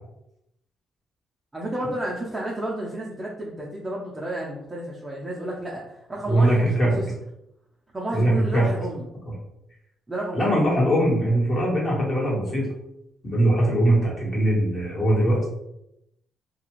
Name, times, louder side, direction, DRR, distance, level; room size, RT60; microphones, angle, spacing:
voice 1, 1.5-7.0 7.9-9.1 10.1-10.5, right 1 dB, 15° right, -4 dB, 0.6 m, -31 dB
voice 2, 6.3-6.9 8.1-8.7 10.3-12.7 13.2-15.4, right 1 dB, 40° left, -5 dB, 1.3 m, -21 dB
2.4 x 2.3 x 3.0 m, 0.82 s
cardioid pair, 90°, 0 cm